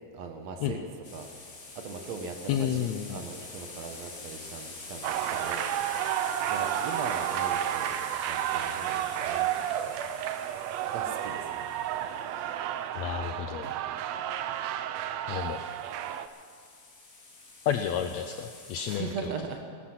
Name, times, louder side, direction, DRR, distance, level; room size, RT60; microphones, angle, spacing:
voice 1, 0.1-0.9 1.1-1.3 1.7-6.2 6.5-10.0 10.9-11.7 12.0-12.1 18.8-19.6, right 4 dB, 65° right, 4 dB, 2.1 m, -40 dB
sound 1, 1.0-12.5 15.4-19.0, left 3 dB, 35° left, 1.6 m, -46 dB
voice 2, 2.5-3.2 12.9-13.8 15.3-15.6 17.7-19.3, left 9 dB, 85° left, 7 dB, 1.6 m, -31 dB
sound 2, 5.0-16.3, right 11 dB, 80° right, 1.5 m, -31 dB
19.0 x 12.0 x 5.9 m, 2.1 s
omnidirectional pair, 3.7 m